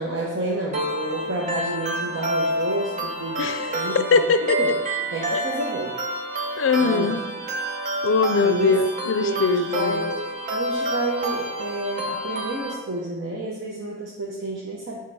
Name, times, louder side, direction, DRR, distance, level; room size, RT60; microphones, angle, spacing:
voice 1, 0.0-3.4 3.7-4.2 4.6-4.7 5.1-6.0 6.8-7.1 8.3-8.8 9.2-10.2 10.5-15.0, right 2 dB, 90° right, -4 dB, 0.9 m, -30 dB
sound 1, 0.7-12.7, right 1 dB, 40° right, 0.8 m, -28 dB
voice 2, 3.4-4.6 5.3-5.4 6.6-7.2 8.0-10.1, left 4 dB, 75° left, 11 dB, 0.4 m, -21 dB
8.4 x 2.9 x 4.8 m, 1.1 s
head